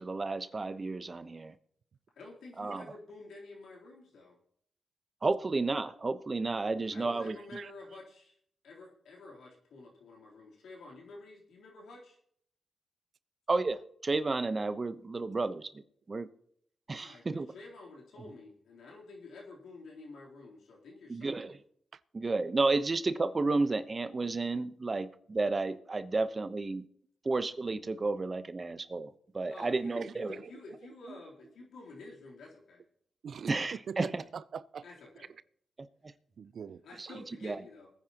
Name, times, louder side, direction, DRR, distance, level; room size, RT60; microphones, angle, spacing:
voice 1, 0.0-1.5 2.6-2.8 5.2-7.3 13.5-15.7 16.1-16.3 16.9-17.5 21.1-21.5 22.1-26.8 27.2-29.1 29.3-30.3 33.5-34.2 37.0-37.1 37.4-37.6, right 3 dB, 40° right, 1.0 m, -32 dB
voice 2, 2.2-4.4 6.9-8.4 8.6-12.2 16.9-21.5 29.5-32.8 34.8-35.3 36.8-37.9, left 3 dB, 90° left, 3.6 m, -50 dB
voice 3, 33.9-34.8 36.4-36.8, right 7 dB, 70° right, 0.5 m, -42 dB
21.5 x 9.8 x 3.0 m
cardioid pair, 60°, 0 cm